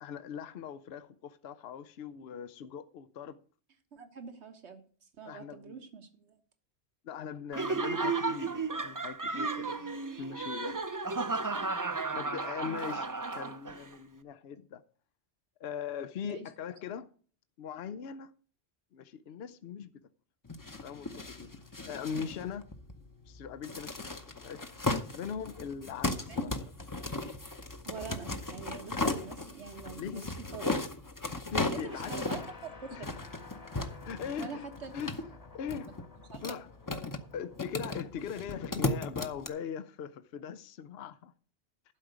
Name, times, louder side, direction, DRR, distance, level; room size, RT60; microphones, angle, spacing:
voice 1, 0.0-3.4 5.2-5.8 7.0-10.8 11.9-13.1 13.3-14.8 15.6-17.1 17.6-18.3 18.9-19.9 20.8-21.5 21.8-22.7 23.3-24.7 25.1-26.5 30.0-30.2 31.5-32.1 32.9-33.0 34.0-34.6 34.9-35.1 35.5-35.9 36.4-36.7 37.3-41.3, left 7 dB, 70° left, 0.9 m, -40 dB
voice 2, 3.9-6.4 12.6-13.0 16.2-16.4 26.3-26.4 27.8-30.9 31.6-33.2 34.4-34.9 35.8-35.9 36.3-36.6, right 5 dB, 85° right, 1.6 m, -45 dB
Laughter, 7.5-13.9, right 3 dB, 25° right, 0.5 m, -33 dB
sound 1, 20.5-39.5, left 2 dB, 20° left, 0.8 m, -37 dB
sound 2, 31.6-37.8, left 4 dB, 35° left, 1.5 m, -52 dB
12.0 x 5.0 x 8.0 m
omnidirectional pair, 1.1 m